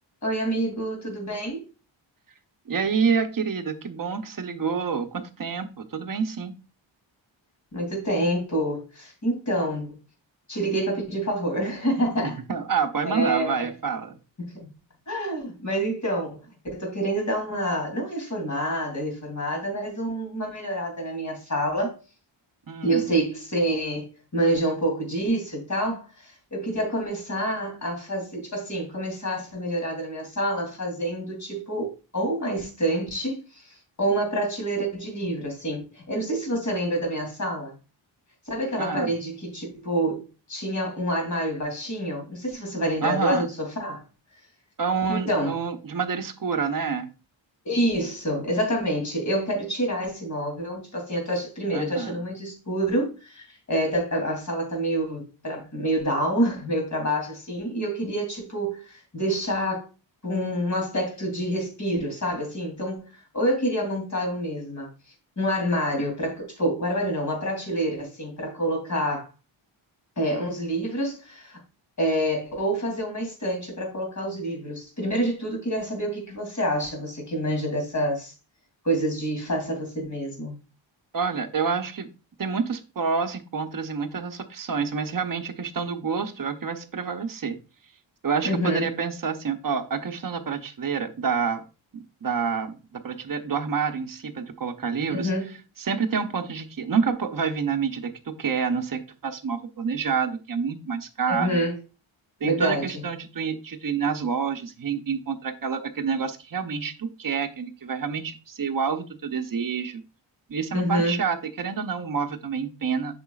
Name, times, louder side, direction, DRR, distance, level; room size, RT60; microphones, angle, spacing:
voice 1, 0.2-1.6 7.7-10.0 10.5-12.4 13.0-13.7 14.5-14.7 15.1-16.4 16.7-21.9 22.8-33.6 34.0-37.7 38.5-44.0 45.1-45.5 47.6-59.8 60.2-64.9 65.4-69.3 70.2-71.6 72.0-78.3 78.8-80.6 88.4-88.8 95.1-95.5 101.3-101.7 102.4-103.0 110.7-111.2, right 1 dB, 35° left, 3.0 m, -27 dB
voice 2, 2.7-6.5 12.2-14.2 22.7-23.1 38.8-39.1 43.0-43.5 44.8-47.1 51.7-52.1 81.1-82.1 82.4-87.6 88.2-91.6 91.9-95.3 95.8-101.6 102.4-110.0 110.5-113.1, right 6 dB, 45° right, 0.8 m, -28 dB
8.0 x 5.8 x 2.4 m
wide cardioid pair, 115°, 47 cm